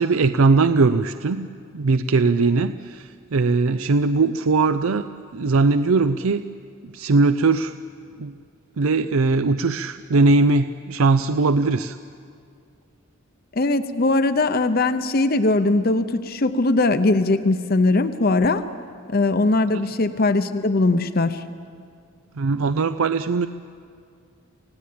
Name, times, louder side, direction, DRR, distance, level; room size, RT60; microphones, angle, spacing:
voice 1, 0.0-5.0 5.3-6.5 6.8-7.7 8.2-8.3 8.8-12.0 19.7-19.8 22.4-23.5, right 3 dB, 80° right, 11 dB, 0.5 m, -20 dB
voice 2, 13.6-18.7 19.1-21.4, left 2 dB, 45° left, 10 dB, 0.7 m, -20 dB
28.5 x 17.0 x 8.6 m, 2.3 s
head